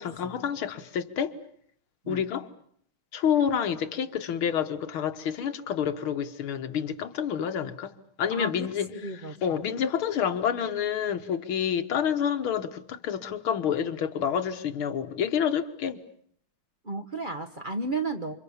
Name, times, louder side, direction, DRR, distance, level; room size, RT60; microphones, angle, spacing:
voice 1, 0.0-1.4 2.1-2.5 3.1-7.9 8.2-8.9 9.4-16.0, left 8 dB, 90° left, 2.2 m, -28 dB
voice 2, 8.3-8.7 9.0-9.5 16.8-18.4, right 3 dB, 30° right, 1.2 m, -33 dB
28.5 x 26.0 x 7.2 m
omnidirectional pair, 2.2 m